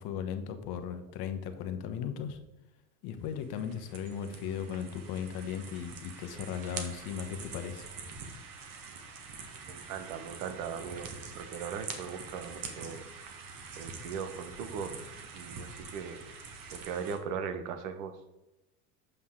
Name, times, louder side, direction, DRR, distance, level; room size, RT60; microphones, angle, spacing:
voice 1, 0.0-2.4 3.0-7.9, left 8 dB, 50° left, 8 dB, 1.1 m, -37 dB
sound 1, 3.3-17.2, right 5 dB, 40° right, 1.5 m, -45 dB
voice 2, 9.7-13.0 13.8-15.0 15.3-16.2 16.7-18.2, right 6 dB, 60° right, 9 dB, 1.2 m, -39 dB
8.0 x 5.6 x 3.7 m, 0.99 s
hypercardioid pair, 85°, 50 cm